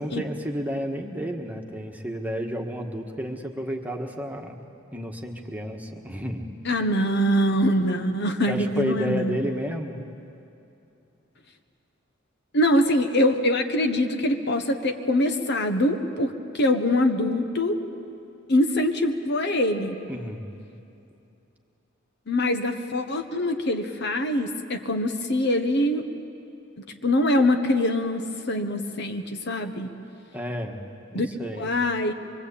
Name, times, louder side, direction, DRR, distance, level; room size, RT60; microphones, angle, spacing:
voice 1, 0.0-4.6 4.9-6.5 8.5-10.0 20.1-20.5 30.3-30.8 31.1-31.8, equal, 10° right, 2 dB, 1.5 m, -31 dB
voice 2, 6.6-9.4 12.5-17.8 18.5-20.0 22.3-26.0 26.8-29.9 31.1-32.1, left 1 dB, 55° left, 6 dB, 1.3 m, -24 dB
24.5 x 23.5 x 8.6 m, 2.7 s
head